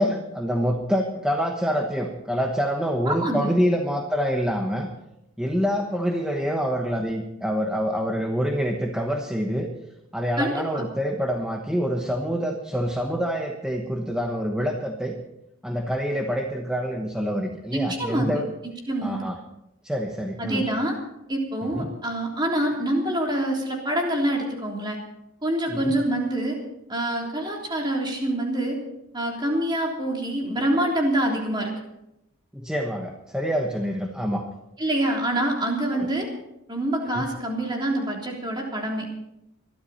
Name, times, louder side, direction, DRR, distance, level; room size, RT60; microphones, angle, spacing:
voice 1, 0.0-4.9 5.4-9.7 10.1-15.2 15.6-18.5 19.0-19.4 19.8-20.6 21.7-21.9 25.7-26.0 32.5-34.4 35.9-36.1 37.1-37.2, equal, 5° right, 1 dB, 1.1 m, -26 dB
voice 2, 3.0-3.5 10.4-10.8 17.7-19.2 20.4-20.9 21.3-25.0 25.4-26.6 26.9-28.8 29.1-31.7 34.8-36.3 36.7-39.1, right 1 dB, 20° right, -1 dB, 3.4 m, -26 dB
21.0 x 13.0 x 4.3 m, 0.85 s
head